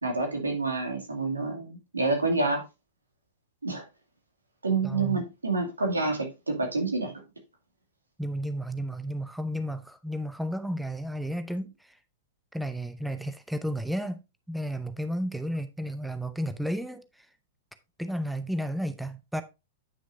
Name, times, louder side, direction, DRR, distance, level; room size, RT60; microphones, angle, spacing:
voice 1, 0.0-2.6 3.6-3.8 4.6-7.1, right 3 dB, 90° right, 2.4 m, -28 dB
voice 2, 4.8-5.3 8.2-12.0 12.5-14.2 14.5-17.3 18.0-19.4, equal, ahead, 0.7 m, -32 dB
9.8 x 6.1 x 2.6 m
figure-of-eight pair, 105°, 0 cm